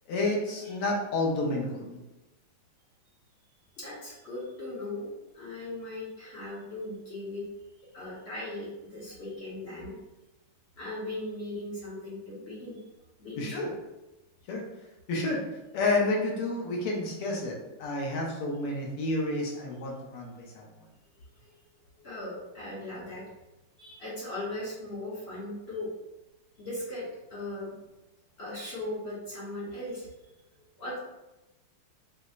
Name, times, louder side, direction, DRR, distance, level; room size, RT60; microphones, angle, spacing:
voice 1, 0.1-2.0 13.4-13.7 14.5-14.6 15.1-15.4 15.7-20.7, left 2 dB, 85° left, -2 dB, 1.7 m, -30 dB
voice 2, 3.7-7.4 7.9-9.9 10.8-12.8 13.2-13.6 19.8-19.9 21.4-21.5 22.0-23.3 23.8-25.9 26.6-27.8 28.4-30.1 30.8-31.0, left 1 dB, 50° left, -7 dB, 0.7 m, -38 dB
5.2 x 2.0 x 2.4 m, 0.98 s
omnidirectional pair, 2.4 m